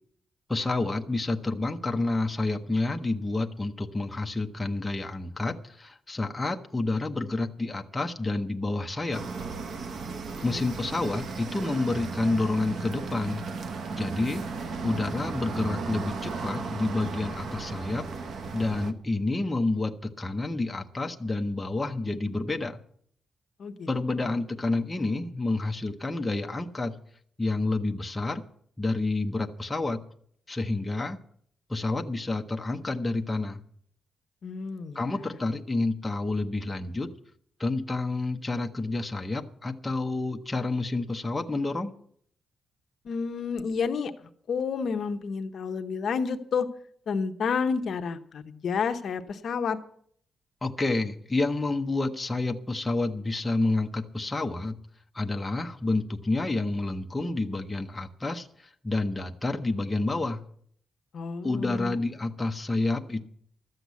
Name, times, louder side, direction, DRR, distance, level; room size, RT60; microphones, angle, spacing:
voice 1, 0.5-9.2 10.4-13.5 13.9-14.4 14.8-18.0 18.5-22.8 23.9-26.9 27.4-28.4 28.8-30.0 30.5-31.2 31.7-33.6 34.9-37.1 37.6-41.9 50.6-54.7 55.1-58.5 58.8-60.4 61.4-63.3, left 2 dB, 10° left, 3 dB, 0.7 m, -29 dB
sound 1, 9.1-18.9, right 4 dB, 55° right, 0.9 m, -35 dB
voice 2, 34.4-35.0 43.0-44.1 44.5-46.7 47.1-49.8 61.1-62.0, left 5 dB, 50° left, 7 dB, 0.8 m, -30 dB
13.0 x 7.8 x 8.2 m, 0.63 s
wide cardioid pair, 170°, 0 cm